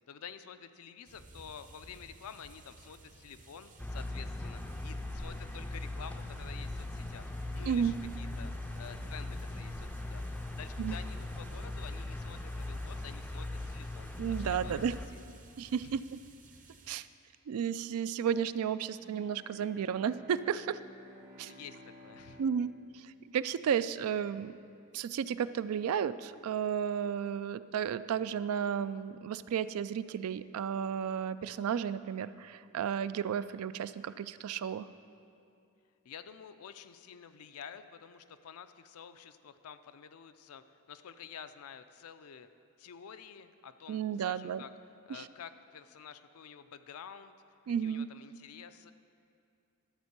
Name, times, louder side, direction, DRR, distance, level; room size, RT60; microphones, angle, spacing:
voice 1, 0.1-7.3 7.5-10.2 10.5-14.1 14.4-14.8 15.1-15.2 15.6-16.0 21.2-22.4 36.0-42.5 42.8-44.7 45.1-47.3 47.8-48.9, left 7 dB, 75° left, 11 dB, 0.4 m, -50 dB
sound 1, 1.0-16.9, right 3 dB, 35° right, 0.7 m, -57 dB
sound 2, 3.8-15.1, left 2 dB, 5° left, 0.4 m, -39 dB
voice 2, 7.7-8.0 10.8-11.0 14.2-14.9 15.6-16.0 16.9-17.1 17.5-20.8 21.4-21.5 22.4-24.6 24.9-34.9 43.9-44.6 47.7-48.1, right 8 dB, 70° right, 14 dB, 0.3 m, -33 dB
Bowed string instrument, 19.0-24.3, equal, 55° right, 1.5 m, -55 dB
11.5 x 4.4 x 8.0 m, 2.5 s
head